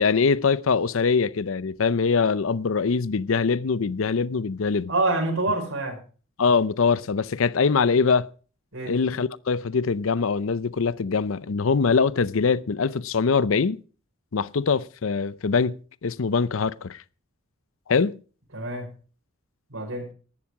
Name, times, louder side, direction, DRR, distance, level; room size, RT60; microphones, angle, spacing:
voice 1, 0.0-4.9 6.4-8.3 8.9-13.8 14.3-17.0 17.9-18.1, left 5 dB, 70° left, 0.6 m, -23 dB
voice 2, 4.9-6.0 8.7-9.0 18.5-18.9 19.7-20.1, right 2 dB, 75° right, 5.2 m, -26 dB
14.5 x 12.0 x 4.8 m
head